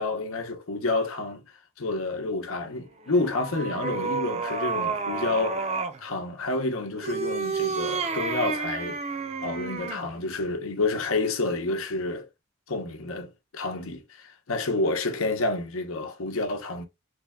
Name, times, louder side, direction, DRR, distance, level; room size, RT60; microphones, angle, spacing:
voice 1, 0.0-1.4 1.8-5.7 6.0-9.0 9.4-12.3 12.7-16.8, left 2 dB, 80° left, 0.8 m, -29 dB
sound 1, 3.0-6.0 6.9-10.1, right 4 dB, 30° right, 0.5 m, -30 dB
3.4 x 2.2 x 3.5 m
head